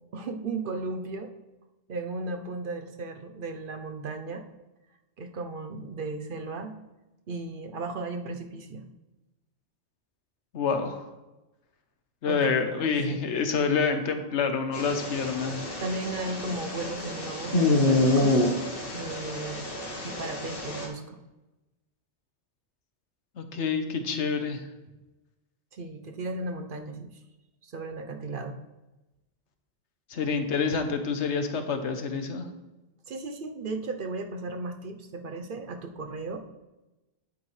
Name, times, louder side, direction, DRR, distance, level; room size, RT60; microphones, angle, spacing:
voice 1, 0.1-1.3 1.9-4.4 5.2-6.8 7.3-8.8 12.3-12.7 13.1-13.2 15.8-18.5 18.9-19.7 20.0-21.2 24.9-25.0 25.7-27.2 27.6-28.6 33.1-36.5, right 3 dB, 55° right, 6 dB, 0.8 m, -35 dB
voice 2, 10.5-11.1 12.2-15.8 23.4-24.7 30.1-32.5, left 5 dB, 85° left, 7 dB, 1.2 m, -28 dB
sound 1, 14.7-20.9, left 2 dB, 55° left, 1.5 m, -27 dB
9.7 x 7.9 x 3.2 m, 1.1 s
omnidirectional pair, 1.2 m